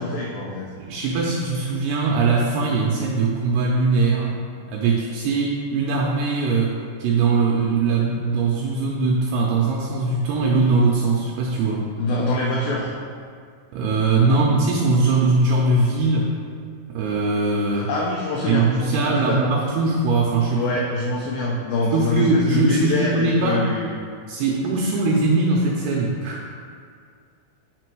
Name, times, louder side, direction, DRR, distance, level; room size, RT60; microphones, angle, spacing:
voice 1, 0.0-0.7 12.0-12.9 14.3-14.4 17.7-19.6 20.5-23.9, left 2 dB, 90° left, -3 dB, 2.0 m, -25 dB
voice 2, 0.8-4.3 4.7-11.9 13.7-16.3 16.9-17.9 18.5-20.6 21.9-23.7 24.3-26.4, right 3 dB, 80° right, -2 dB, 2.3 m, -21 dB
7.4 x 6.0 x 4.6 m, 2.1 s
omnidirectional pair, 5.3 m